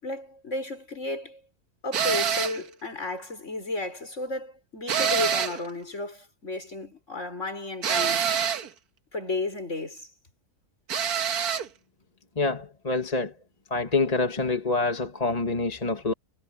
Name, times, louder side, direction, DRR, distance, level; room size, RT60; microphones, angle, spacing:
voice 1, 0.0-1.4 1.8-8.3 9.1-10.1, left 2 dB, 50° left, 5.7 m, -33 dB
sound 1, 1.9-2.6 4.9-5.7 7.8-8.7 10.9-11.7, right 8 dB, 75° right, 1.7 m, -26 dB
voice 2, 12.4-13.3 13.7-16.1, left 3 dB, 25° left, 1.8 m, -26 dB
omnidirectional pair, 1.6 m